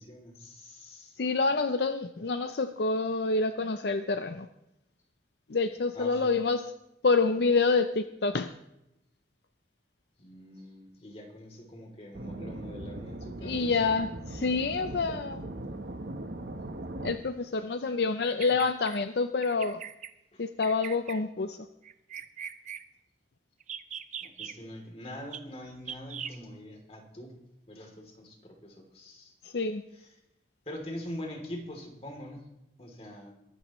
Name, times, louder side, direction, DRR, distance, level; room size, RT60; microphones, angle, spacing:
voice 1, 0.0-1.2 5.9-6.3 10.2-14.2 20.3-20.5 24.2-27.4 27.7-29.3 29.9-30.1 30.6-32.5 32.8-33.4, left 1 dB, 35° left, 2 dB, 3.1 m, -44 dB
voice 2, 1.2-4.5 5.5-6.7 7.0-8.5 13.4-15.4 17.0-19.8 20.4-21.6 29.4-29.8, left 4 dB, 65° left, 9 dB, 0.6 m, -27 dB
sound 1, 12.1-17.1, right 1 dB, 70° right, 1.1 m, -39 dB
Bird vocalization bird call bird song, 18.2-19.0 19.4-20.1 20.6-21.2 21.8-22.8 23.6-24.5 25.3-25.4 25.9-26.4, right 8 dB, 40° right, 0.7 m, -40 dB
22.5 x 13.0 x 3.1 m, 0.88 s
head